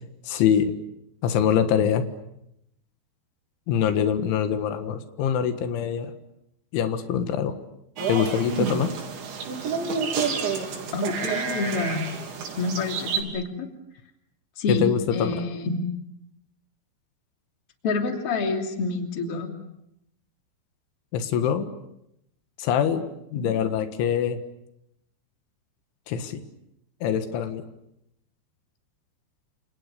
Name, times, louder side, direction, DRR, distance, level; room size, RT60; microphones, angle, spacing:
voice 1, 0.2-0.7 1.2-2.1 3.7-6.1 6.7-7.6 8.1-8.9 14.7-15.3 21.1-21.7 22.6-24.4 26.1-26.4 27.0-27.6, left 8 dB, 85° left, 9 dB, 4.0 m, -24 dB
sound 1, 8.0-13.2, right 5 dB, 75° right, 6.0 m, -29 dB
voice 2, 10.9-12.0 12.6-13.7 14.6-14.9 15.1-15.8 17.8-19.5 23.3-23.6, left 3 dB, 35° left, 4 dB, 3.3 m, -28 dB
30.0 x 28.0 x 6.9 m, 0.81 s
omnidirectional pair, 5.3 m